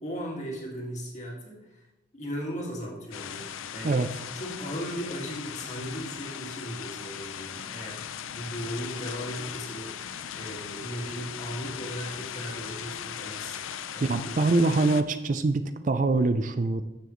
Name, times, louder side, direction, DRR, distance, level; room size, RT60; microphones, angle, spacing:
voice 1, 0.0-1.9 2.1-4.0 4.3-14.4, equal, 35° left, -2 dB, 1.9 m, -37 dB
sound 1, 3.1-15.0, left 9 dB, 90° left, 0.5 m, -38 dB
voice 2, 14.0-16.8, right 3 dB, 40° right, 10 dB, 0.4 m, -24 dB
12.5 x 7.1 x 3.0 m, 0.99 s
head